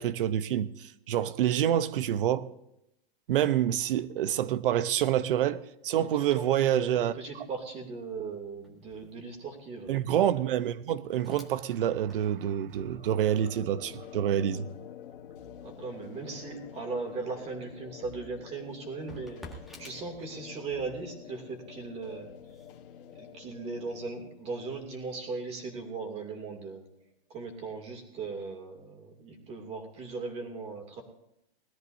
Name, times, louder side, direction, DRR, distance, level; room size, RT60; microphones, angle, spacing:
voice 1, 0.0-2.5 3.3-7.1 9.9-14.7, right 11 dB, 60° right, 0.9 m, -27 dB
voice 2, 5.9-10.0 15.6-19.4 19.8-22.3 23.1-26.8 27.3-31.0, right 4 dB, 20° right, 2.7 m, -38 dB
sound 1, 6.6-20.8 21.3-24.3, left 1 dB, ahead, 1.6 m, -56 dB
sound 2, 12.7-26.4, left 9 dB, 60° left, 1.6 m, -48 dB
21.0 x 13.0 x 2.7 m
hypercardioid pair, 150°, 31 cm